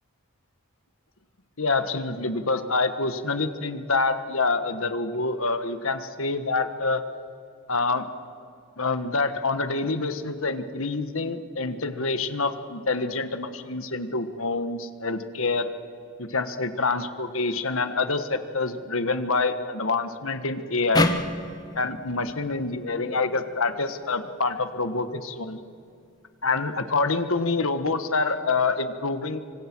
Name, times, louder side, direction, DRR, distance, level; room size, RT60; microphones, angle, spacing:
voice 1, 1.6-7.0 7.7-8.1 8.8-15.7 16.2-21.1 21.7-25.6 26.4-29.4, left 3 dB, 70° left, 10 dB, 1.5 m, -26 dB
sound 1, 20.9-24.2, left 2 dB, 20° left, 1.1 m, -29 dB
25.5 x 25.5 x 6.2 m, 2.4 s
head